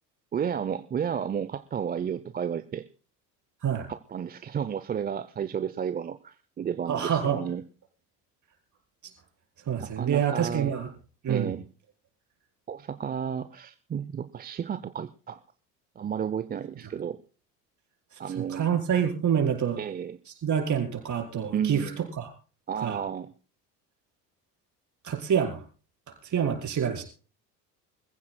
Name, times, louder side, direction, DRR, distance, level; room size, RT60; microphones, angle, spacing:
voice 1, 0.3-2.9 3.9-7.6 9.8-10.7 11.3-11.6 12.7-15.4 16.0-17.2 18.2-18.8 19.8-20.2 21.5-22.0 22.7-23.3, right 8 dB, 20° right, 12 dB, 0.6 m, -32 dB
voice 2, 6.9-7.4 9.7-10.9 11.2-11.5 18.5-19.8 20.4-22.3 22.8-23.0 25.0-25.6 26.2-27.0, right 8 dB, 40° right, 2 dB, 4.4 m, -27 dB
25.5 x 15.5 x 2.2 m, 0.38 s
hypercardioid pair, 65°, 47 cm